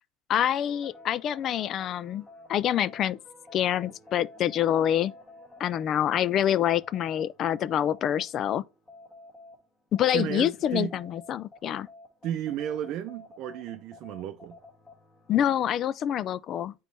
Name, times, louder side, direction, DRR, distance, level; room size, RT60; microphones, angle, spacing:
voice 1, 0.3-3.2 3.5-5.1 5.6-8.6 9.9-11.9 15.3-16.7, left 10 dB, 45° left, 0.3 m, -26 dB
sound 1, 0.7-9.5 9.9-15.9, left 2 dB, 20° left, 2.1 m, -51 dB
voice 2, 10.1-11.0 12.2-14.6, right 10 dB, 55° right, 0.5 m, -33 dB
9.1 x 3.1 x 3.3 m
supercardioid pair, 130°, 0 cm